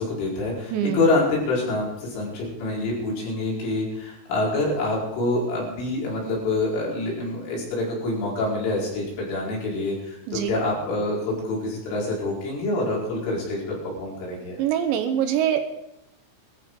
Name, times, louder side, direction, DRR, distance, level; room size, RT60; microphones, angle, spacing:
voice 1, 0.0-14.6, left 2 dB, 80° left, -4 dB, 7.1 m, -26 dB
voice 2, 0.7-1.0 10.3-10.6 14.6-15.6, right 10 dB, 75° right, 8 dB, 3.1 m, -24 dB
21.0 x 13.5 x 3.8 m, 0.83 s
omnidirectional pair, 5.5 m